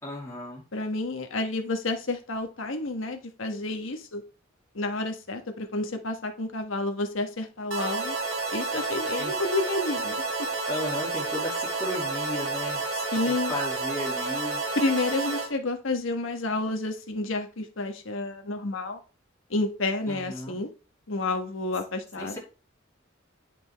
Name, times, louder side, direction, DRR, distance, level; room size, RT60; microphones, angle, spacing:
voice 1, 0.0-0.6 9.2-9.3 10.7-12.8 13.3-14.6 20.1-20.6 22.2-22.4, left 1 dB, 15° left, -5 dB, 2.5 m, -34 dB
voice 2, 0.7-4.2 4.7-8.2 8.5-10.5 12.9-13.5 14.8-19.0 19.5-20.7 21.1-22.4, left 2 dB, 90° left, 5 dB, 1.3 m, -30 dB
slot machine, 7.7-15.5, right 3 dB, 90° right, 2.1 m, -30 dB
9.5 x 5.1 x 3.5 m, 0.35 s
head